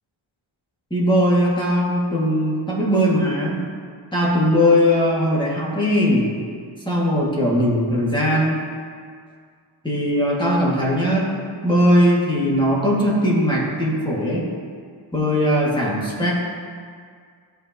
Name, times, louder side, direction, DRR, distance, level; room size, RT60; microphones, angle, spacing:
voice 1, 0.9-3.7 4.1-6.3 6.9-8.6 9.8-11.2 11.6-14.5 15.1-16.3, equal, 10° left, -6 dB, 2.2 m, -19 dB
14.0 x 5.7 x 3.0 m, 2.1 s
wide cardioid pair, 70°, 49 cm